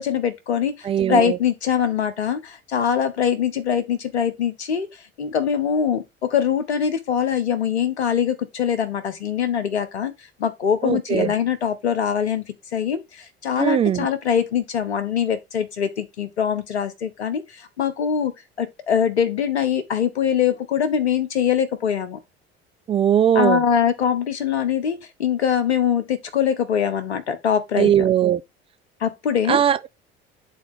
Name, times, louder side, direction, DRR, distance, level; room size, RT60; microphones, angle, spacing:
voice 1, 0.0-4.9 5.2-10.1 10.4-12.5 12.7-18.3 18.6-22.2 23.3-28.1 29.0-29.6, left 8 dB, 75° left, 1.0 m, -23 dB
voice 2, 0.8-1.4 10.8-11.3 13.6-14.1 22.9-23.6 27.7-28.4 29.5-29.9, right 10 dB, 20° right, 0.3 m, -19 dB
8.7 x 3.9 x 3.6 m
figure-of-eight pair, 60°, 33 cm